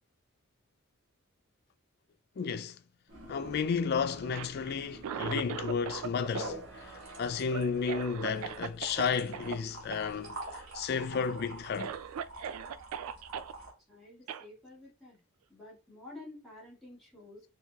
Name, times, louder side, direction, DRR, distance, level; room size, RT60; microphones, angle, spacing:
voice 1, 2.4-2.8 3.3-11.9, left 6 dB, 45° left, 0.3 m, -33 dB
sound 1, 3.1-13.7, right 1 dB, 65° right, 1.7 m, -47 dB
Cough, 4.2-6.1 6.3-9.0 9.3-9.6 9.9-10.1 10.4-10.9 11.4-11.5 11.8-13.5 14.3-14.4, right 7 dB, 85° right, 0.3 m, -39 dB
voice 2, 13.9-15.2 15.5-17.4, left 2 dB, ahead, 2.0 m, -50 dB
4.6 x 2.8 x 2.3 m
head